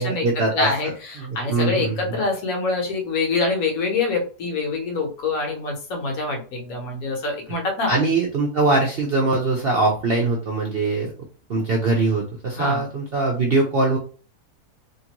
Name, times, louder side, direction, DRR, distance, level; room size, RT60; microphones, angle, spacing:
voice 1, 0.0-0.7 1.2-2.1 7.9-11.1 11.5-14.0, right 3 dB, 60° right, -2 dB, 0.6 m, -22 dB
voice 2, 0.5-7.9 12.6-12.8, left 3 dB, 65° left, 2 dB, 1.3 m, -25 dB
2.9 x 2.4 x 2.9 m, 0.39 s
omnidirectional pair, 1.6 m